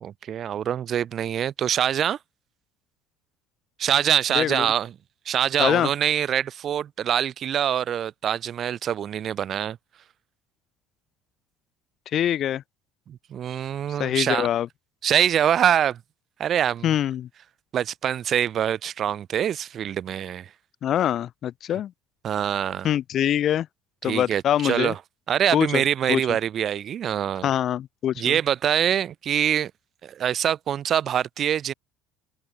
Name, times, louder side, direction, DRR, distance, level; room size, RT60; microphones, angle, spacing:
voice 1, 0.0-2.2 3.8-4.9 5.3-9.8 13.1-14.5 15.0-16.0 16.4-16.9 17.7-20.5 22.2-22.9 24.0-25.0 25.3-27.5 28.2-29.7 30.0-31.7, right 9 dB, 40° right, 0.5 m, -24 dB
voice 2, 4.3-4.7 5.6-5.9 12.1-12.6 14.0-14.7 16.8-17.3 20.8-21.9 22.8-23.7 24.0-24.9 25.5-25.8 26.1-26.2 27.4-28.4, left 11 dB, 45° left, 0.6 m, -24 dB
open air
cardioid pair, 135°, 0 cm